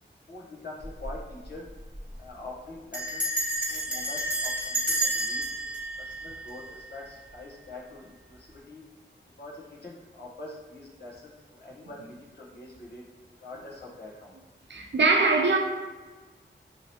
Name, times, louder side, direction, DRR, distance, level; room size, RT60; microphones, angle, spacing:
voice 1, 0.3-1.7 2.2-3.3 3.7-8.8 9.4-13.0 13.4-14.3, left 2 dB, 60° left, 0.8 m, -44 dB
Bell, 0.8-1.2 1.4-1.5 1.8-2.1 2.9-7.0, right 1 dB, 5° right, 1.2 m, -30 dB
voice 2, 14.7-15.6, right 3 dB, 70° right, 0.5 m, -22 dB
2.8 x 2.8 x 3.0 m
wide cardioid pair, 75°, 19 cm